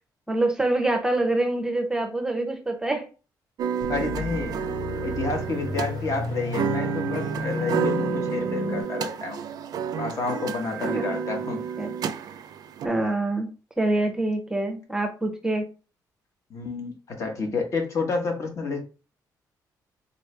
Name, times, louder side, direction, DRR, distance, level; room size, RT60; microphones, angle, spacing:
voice 1, 0.3-3.1 10.9-11.2 11.8-11.9 12.8-13.5 13.8-15.7, right 2 dB, 10° right, 4 dB, 0.6 m, -25 dB
sound 1, 3.6-12.9, right 7 dB, 60° right, 0.4 m, -30 dB
sound 2, 3.8-8.8, left 2 dB, 85° left, 1.1 m, -32 dB
voice 2, 3.9-4.6 4.9-9.4 10.0-11.6 16.5-18.8, left 3 dB, 45° left, 4 dB, 1.1 m, -29 dB
4.0 x 3.1 x 3.2 m, 0.33 s
cardioid pair, 155°, 7 cm